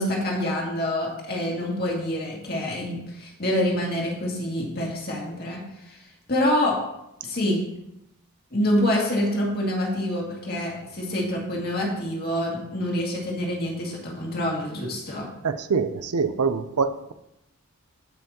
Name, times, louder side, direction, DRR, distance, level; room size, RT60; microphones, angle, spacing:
voice 1, 0.0-5.6 6.3-6.8 7.2-7.6 8.5-15.3, left 1 dB, 45° left, -2 dB, 2.2 m, -26 dB
voice 2, 15.4-17.1, right 5 dB, 85° right, 12 dB, 0.6 m, -25 dB
14.5 x 5.8 x 2.9 m, 0.84 s
head